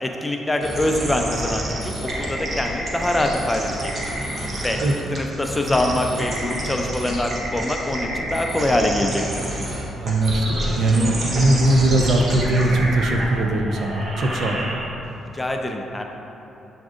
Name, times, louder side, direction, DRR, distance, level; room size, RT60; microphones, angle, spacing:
voice 1, 0.0-3.9 4.6-4.8 5.1-9.2 15.3-16.0, left 1 dB, 15° left, 3 dB, 0.4 m, -24 dB
sound 1, 0.6-15.1, right 1 dB, 45° right, 0.8 m, -28 dB
voice 2, 10.0-14.6, right 1 dB, 65° right, 3 dB, 0.4 m, -20 dB
7.1 x 2.6 x 2.5 m, 2.9 s
cardioid pair, 90°, 0 cm